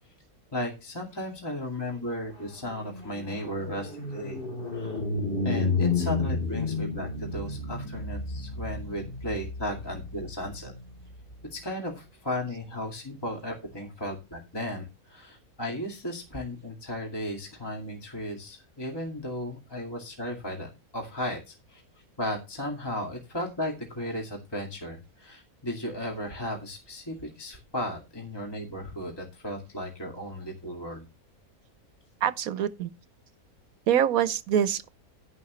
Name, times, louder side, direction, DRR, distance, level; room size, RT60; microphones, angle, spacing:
voice 1, 0.5-4.4 4.7-5.0 5.4-10.7 11.5-21.8 22.2-31.0, left 1 dB, 15° left, 2.3 m, -35 dB
sound 1, 2.0-11.5, left 3 dB, 35° left, 3.7 m, -32 dB
voice 2, 32.2-32.9 33.9-34.9, right 9 dB, 75° right, 1.2 m, -25 dB
11.5 x 10.5 x 3.1 m
omnidirectional pair, 1.6 m